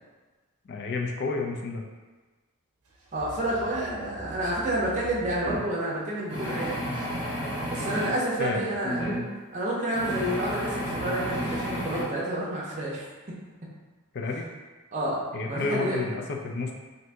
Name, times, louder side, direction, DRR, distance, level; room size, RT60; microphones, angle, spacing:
voice 1, 0.6-1.8 8.4-8.8 14.1-14.4 15.3-16.7, left 3 dB, 50° left, 1 dB, 0.4 m, -30 dB
sound 1, 2.9-5.6, right 1 dB, 85° right, 0.7 m, -44 dB
voice 2, 3.1-6.9 7.7-9.0 9.5-13.0 14.9-16.1, right 1 dB, 35° right, -6 dB, 0.6 m, -29 dB
sound 2, 5.4-5.6 6.3-8.1 8.8-9.2 9.9-12.0, equal, 10° left, 1.3 m, -31 dB
2.7 x 2.6 x 3.3 m, 1.3 s
head